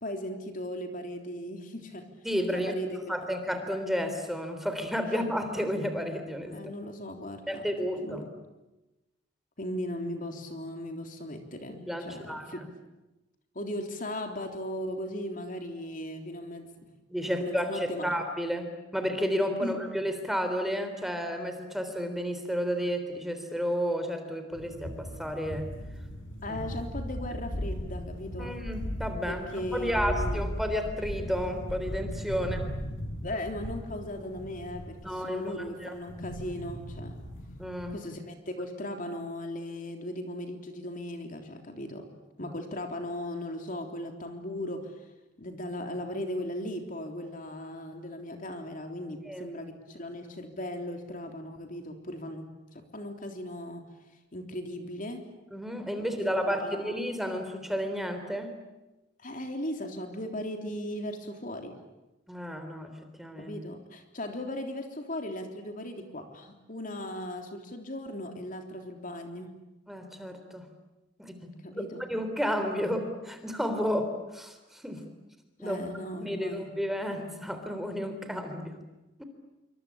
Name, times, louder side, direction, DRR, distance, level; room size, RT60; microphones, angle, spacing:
voice 1, 0.0-2.1 2.5-3.1 6.5-7.7 8.0-8.3 9.6-12.6 13.6-16.8 17.2-18.2 19.6-19.8 26.4-28.6 29.3-30.4 32.4-32.5 33.2-37.2 37.9-42.1 42.4-44.9 45.4-53.9 54.3-55.3 56.0-57.0 59.2-61.8 63.4-69.5 71.6-72.1 75.6-76.7, left 1 dB, 45° left, 5 dB, 3.4 m, -37 dB
voice 2, 2.2-2.7 3.1-6.6 7.5-8.2 11.9-12.7 17.1-25.7 26.5-26.6 28.4-32.6 35.0-35.5 35.8-35.9 37.6-38.0 42.4-42.5 49.3-49.5 55.5-58.5 62.3-62.9 63.2-63.5 69.9-70.7 71.2-71.5 72.0-75.0 75.6-75.8 76.2-78.8 79.2-79.3, equal, ahead, 6 dB, 3.5 m, -32 dB
sound 1, 24.5-38.0, equal, 85° left, 6.8 m, -37 dB
27.5 x 25.0 x 8.7 m, 1.0 s
head